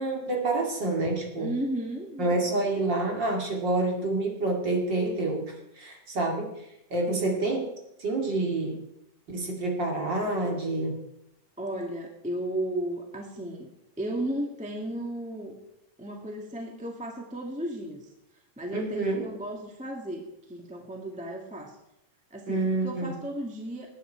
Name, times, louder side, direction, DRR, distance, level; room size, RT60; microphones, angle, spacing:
voice 1, 0.0-1.5 2.2-6.5 6.9-7.6 8.0-8.8 9.3-11.0 18.7-19.2 22.5-23.1, right 2 dB, 40° right, 0 dB, 2.7 m, -28 dB
voice 2, 1.4-2.4 7.1-7.5 11.6-13.7 14.0-15.6 16.0-18.1 18.6-21.8 22.3-23.9, right 1 dB, 5° right, 1 dB, 1.1 m, -34 dB
19.0 x 9.8 x 4.6 m, 0.84 s
omnidirectional pair, 3.5 m